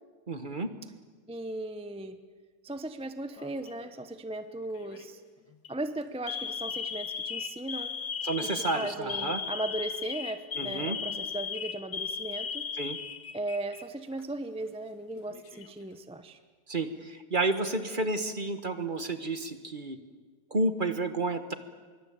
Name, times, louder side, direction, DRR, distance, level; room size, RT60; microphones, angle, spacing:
voice 1, 0.3-0.7 8.2-9.4 10.6-11.0 12.7-13.0 16.7-20.0 20.5-21.5, right 2 dB, 30° right, 9 dB, 1.4 m, -31 dB
voice 2, 1.3-2.2 2.6-5.2 5.7-7.9 8.4-12.6 13.3-16.4, right 2 dB, 5° right, 9 dB, 0.6 m, -37 dB
Alarm, 3.4-3.9 4.7-5.0 5.5-5.7 6.3-13.8 14.1-14.2 15.1-15.8, left 6 dB, 75° left, 2.3 m, -36 dB
25.5 x 23.5 x 8.7 m, 1.4 s
omnidirectional pair, 2.0 m